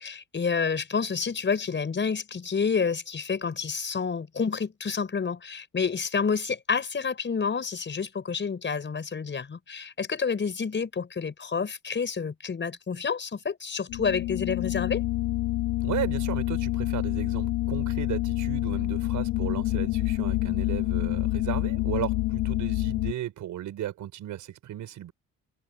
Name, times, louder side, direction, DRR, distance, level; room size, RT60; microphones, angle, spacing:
voice 1, 0.0-15.0, left 5 dB, 40° left, 5.8 m, -29 dB
sound 1, 13.9-23.1, left 19 dB, 85° left, 0.7 m, -27 dB
voice 2, 15.8-25.1, right 12 dB, 80° right, 5.9 m, -35 dB
open air
cardioid pair, 90°, 30 cm